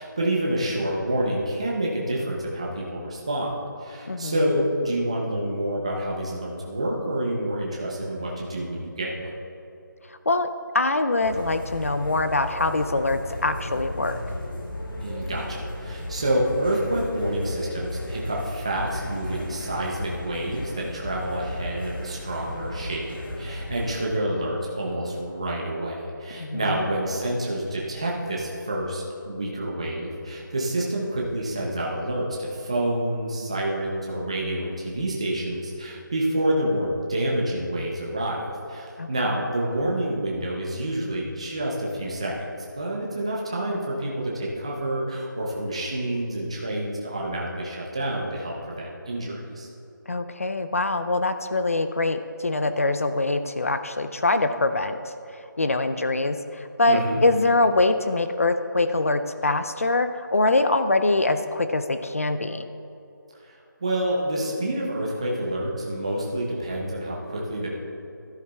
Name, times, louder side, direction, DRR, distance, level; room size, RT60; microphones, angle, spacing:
voice 1, 0.0-9.3 15.0-42.5 42.8-49.7 56.9-57.2 63.4-67.7, right 1 dB, 15° right, -3 dB, 0.7 m, -28 dB
voice 2, 10.7-14.2 26.3-26.8 39.0-39.4 50.1-55.1 55.6-62.6, left 2 dB, 40° left, 9 dB, 0.5 m, -24 dB
sound 1, 11.2-24.0, left 1 dB, 80° left, 1.7 m, -35 dB
16.5 x 10.5 x 2.3 m, 2.8 s
figure-of-eight pair, 180°, 11 cm